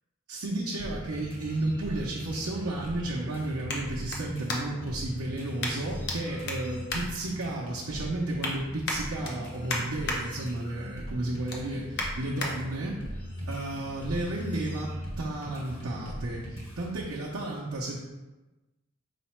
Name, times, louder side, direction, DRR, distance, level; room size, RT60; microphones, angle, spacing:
voice 1, 0.3-13.0 13.5-18.0, right 1 dB, 75° right, -5 dB, 0.6 m, -33 dB
sound 1, 0.8-17.1, equal, 25° left, 1.1 m, -40 dB
sound 2, 1.2-5.0 5.6-6.2 6.4-7.8 8.1-8.5 8.8-10.2 10.6-10.9 11.2-12.5 13.1-13.2, left 2 dB, 50° left, 0.7 m, -36 dB
4.8 x 2.1 x 4.3 m, 1.1 s
head